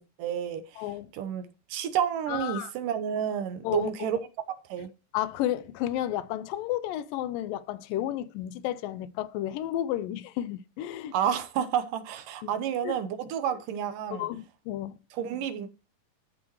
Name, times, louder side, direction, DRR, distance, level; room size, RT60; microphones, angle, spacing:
voice 1, 0.0-0.6 1.1-4.2 4.7-4.9 11.1-14.3 15.1-15.7, right 9 dB, 75° right, 2.4 m, -30 dB
voice 2, 0.8-1.1 2.3-2.7 3.6-4.2 5.1-11.1 12.8-12.9 14.1-14.9, left 13 dB, 80° left, 2.3 m, -32 dB
13.0 x 6.2 x 3.1 m
omnidirectional pair, 4.0 m